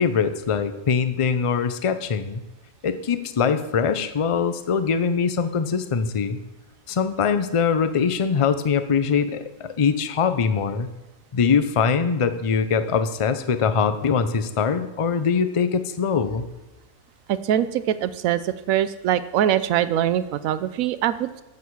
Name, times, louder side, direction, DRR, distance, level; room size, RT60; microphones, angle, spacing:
voice 1, 0.0-2.4 2.8-6.4 6.9-10.9 11.3-16.5, left 6 dB, 45° left, 10 dB, 0.4 m, -22 dB
voice 2, 17.3-21.4, right 11 dB, 80° right, 13 dB, 1.0 m, -23 dB
12.5 x 7.5 x 4.7 m, 1.0 s
omnidirectional pair, 1.4 m